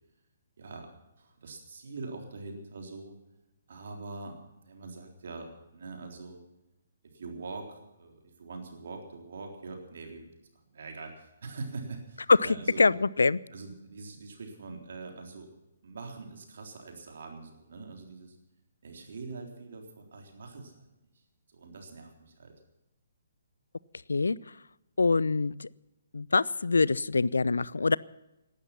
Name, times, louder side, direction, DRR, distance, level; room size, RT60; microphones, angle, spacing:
voice 1, 0.6-0.9 1.2-3.1 3.7-6.4 7.0-10.3 10.5-12.8 13.5-15.5 15.8-18.4 18.8-20.9 21.1-21.2 21.5-22.5, right 3 dB, 55° right, 3 dB, 3.7 m, -43 dB
voice 2, 12.4-13.4 24.1-24.4 25.0-25.7 26.1-28.0, left 4 dB, 70° left, 21 dB, 0.5 m, -25 dB
18.0 x 12.0 x 5.8 m, 0.95 s
figure-of-eight pair, 130°, 0 cm